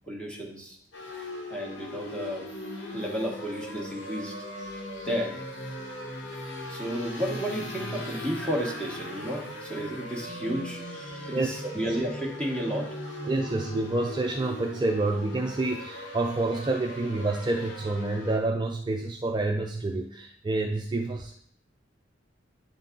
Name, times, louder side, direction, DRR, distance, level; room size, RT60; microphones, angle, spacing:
voice 1, 0.1-0.8 1.5-2.5 2.9-4.3 5.0-5.4 6.7-12.9 13.2-13.3, equal, 5° left, -2 dB, 1.3 m, -32 dB
sound 1, 0.9-18.4, left 1 dB, 70° left, 1.2 m, -40 dB
sound 2, 2.5-13.8, equal, 45° left, 1.5 m, -42 dB
voice 2, 11.3-12.0 13.3-21.3, right 2 dB, 25° right, 1 dB, 0.4 m, -28 dB
9.6 x 4.0 x 3.8 m, 0.66 s
head